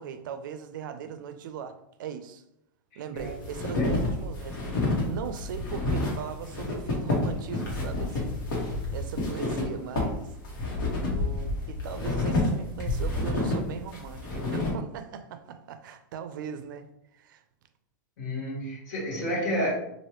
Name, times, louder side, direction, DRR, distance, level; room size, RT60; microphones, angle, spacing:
voice 1, 0.0-2.4 3.0-8.4 8.9-10.3 11.0-16.9 17.1-17.4, right 7 dB, 80° right, 0.4 m, -39 dB
sound 1, 3.2-14.7, left 2 dB, 90° left, 1.2 m, -29 dB
voice 2, 18.2-19.7, equal, 65° left, 1.2 m, -30 dB
3.2 x 2.5 x 2.9 m
supercardioid pair, 150°, 11 cm